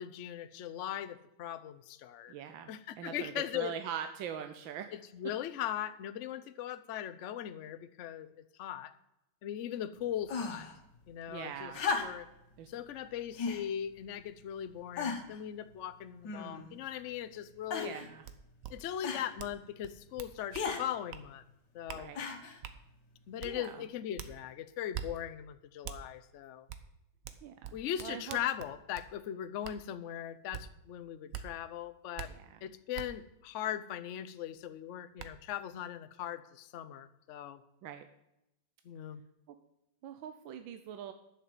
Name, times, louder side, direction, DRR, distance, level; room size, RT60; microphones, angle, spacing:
voice 1, 0.0-2.3 2.7-3.7 4.9-8.9 9.4-10.7 11.1-11.7 12.0-12.3 12.7-18.0 18.7-21.4 21.7-22.1 23.3-26.7 27.7-32.3 32.6-37.6 38.8-39.2, left 10 dB, 85° left, 10 dB, 0.6 m, -39 dB
voice 2, 2.3-4.9 11.3-11.8 12.6-12.7 17.8-18.2 21.9-22.3 23.4-23.8 27.4-27.7 28.0-28.4 32.3-32.6 37.8-38.1 40.0-41.1, right 8 dB, 75° right, 7 dB, 1.4 m, -42 dB
sound 1, 10.3-10.8 11.7-12.4 13.4-13.7 14.4-14.5 15.0-15.4 16.2-16.8 17.7-18.1 19.0-19.3 20.5-20.8 22.1-22.6 23.6-23.7, left 5 dB, 60° left, 1.8 m, -35 dB
sound 2, 18.2-18.3 18.6-18.7 19.4-19.6 19.8-20.7 21.1-21.3 21.9-22.0 22.6-22.8 23.4-23.5 24.2-24.3 24.9-25.1 25.8-26.0 26.7-26.8 27.2-29.1 29.6-29.8 30.5-30.6 31.3-31.5 32.2-32.3 32.9-33.1 34.6-34.7 35.2-35.3, right 9 dB, 60° right, 1.0 m, -43 dB
11.0 x 6.6 x 7.7 m, 0.86 s
omnidirectional pair, 2.2 m